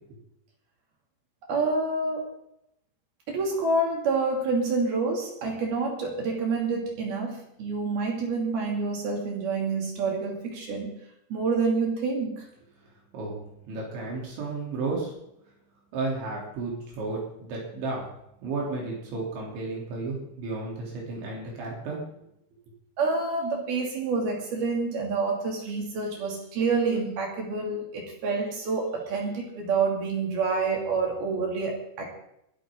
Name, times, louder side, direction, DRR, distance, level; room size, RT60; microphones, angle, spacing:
voice 1, 1.5-2.3 3.3-10.9 11.3-12.4 23.0-32.1, right 4 dB, 55° right, 0 dB, 4.4 m, -28 dB
voice 2, 13.1-15.1 15.9-18.1 18.4-22.0, right 3 dB, 70° right, -3 dB, 5.7 m, -33 dB
22.0 x 11.5 x 3.9 m, 0.79 s
omnidirectional pair, 5.4 m